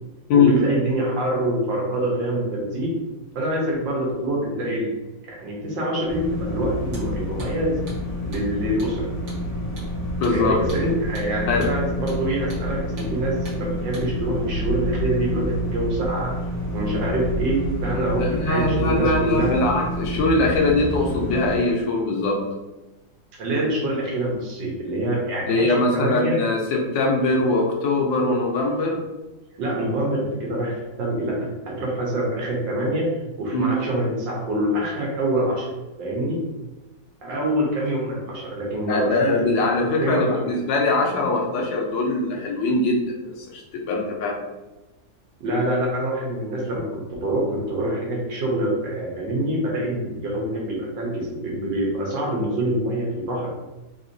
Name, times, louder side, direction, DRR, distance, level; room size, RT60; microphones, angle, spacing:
voice 1, 0.3-2.9 3.3-4.9 5.2-7.7 8.3-9.1 10.3-16.4 16.7-19.6 23.4-26.4 29.6-31.4 31.7-33.1 33.4-35.7 36.0-36.4 37.2-39.3 40.0-40.5 45.4-53.5, right 1 dB, 75° right, -3 dB, 1.7 m, -25 dB
sound 1, 6.1-21.6, equal, 40° left, 1.6 m, -28 dB
Hammer, 6.8-7.1 7.4-7.5 7.9-8.0 8.3-8.5 8.8-8.9 9.3-9.4 9.8-9.9 10.2-10.4 10.7-10.8 11.2-11.3 11.6-11.8 12.1-12.2 12.5-12.7 13.0-13.1 13.5-13.6 13.9-14.1, right 1 dB, 60° right, 1.8 m, -40 dB
voice 2, 10.2-10.6 11.5-11.7 18.2-22.4 25.5-29.0 33.5-33.7 38.9-43.0 43.2-44.4, left 2 dB, 90° left, 0 dB, 1.4 m, -22 dB
4.0 x 2.8 x 2.6 m, 1.1 s
omnidirectional pair, 2.0 m